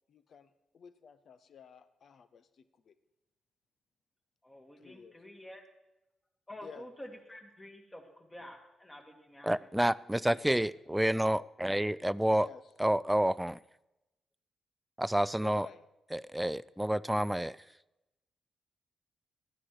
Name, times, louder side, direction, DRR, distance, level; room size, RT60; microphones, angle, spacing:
voice 1, 0.1-2.9 4.8-5.2 6.6-6.9 10.3-10.6 11.1-11.5 12.4-12.6 15.4-15.8, left 6 dB, 60° left, 13 dB, 0.7 m, -52 dB
voice 2, 4.4-5.6 6.5-10.4, left 1 dB, 20° left, 3 dB, 2.3 m, -50 dB
voice 3, 9.4-12.5 12.8-13.6 15.0-15.7 16.1-17.6, right 1 dB, 5° right, 19 dB, 0.4 m, -29 dB
13.0 x 9.8 x 4.8 m, 0.94 s
hypercardioid pair, 45°, 0 cm